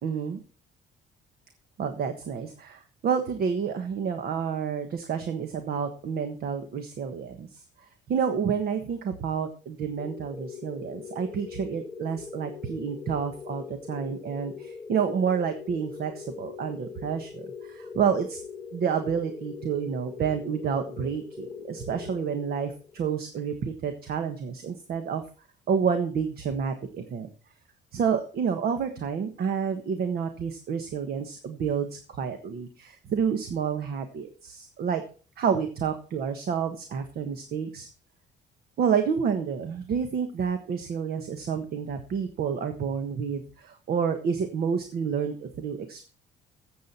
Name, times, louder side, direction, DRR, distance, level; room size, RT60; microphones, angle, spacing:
voice 1, 0.0-0.4 1.8-7.6 8.1-18.4 18.7-25.2 25.7-27.3 27.9-35.0 35.4-37.9 38.8-46.0, right 7 dB, 60° right, 7 dB, 1.4 m, -29 dB
sound 1, 10.0-23.1, left 5 dB, 15° left, 1.1 m, -41 dB
14.5 x 7.8 x 4.3 m, 0.37 s
cardioid pair, 130°, 18 cm